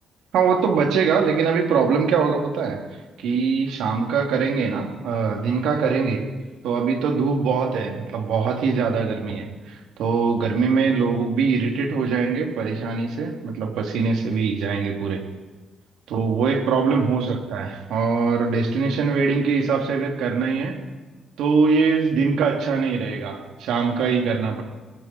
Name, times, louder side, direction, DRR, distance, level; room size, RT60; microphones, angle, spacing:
voice 1, 0.3-2.8 3.2-6.3 6.6-15.2 16.1-20.8 21.4-24.6, right 5 dB, 85° right, 2 dB, 3.5 m, -22 dB
26.5 x 20.5 x 4.7 m, 1.3 s
cardioid pair, 90°, 0 cm